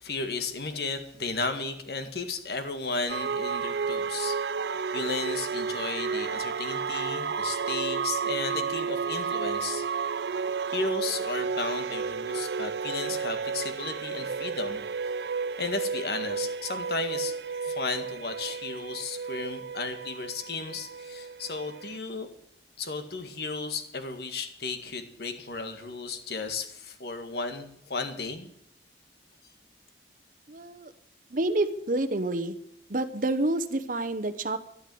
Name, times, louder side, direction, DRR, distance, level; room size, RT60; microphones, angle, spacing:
voice 1, 0.0-4.4 4.9-9.8 10.7-14.8 15.6-17.3 17.6-22.3 22.8-28.5, left 3 dB, 60° left, 7 dB, 1.8 m, -34 dB
sound 1, 3.1-22.0, right 5 dB, 65° right, 0.5 m, -32 dB
voice 2, 30.5-30.9 31.3-32.6 32.9-34.6, right 2 dB, 50° right, 12 dB, 0.9 m, -28 dB
12.5 x 11.5 x 7.8 m, 0.70 s
head